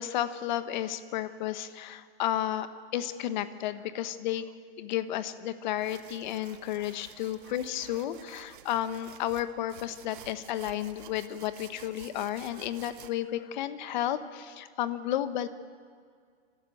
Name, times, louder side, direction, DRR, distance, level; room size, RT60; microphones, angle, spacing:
voice 1, 0.0-4.5 4.8-15.5, left 12 dB, 45° left, 12 dB, 1.1 m, -32 dB
sound 1, 5.8-13.1, right 12 dB, 50° right, 1.1 m, -51 dB
26.5 x 13.0 x 9.2 m, 2.1 s
hypercardioid pair, 150°, 33 cm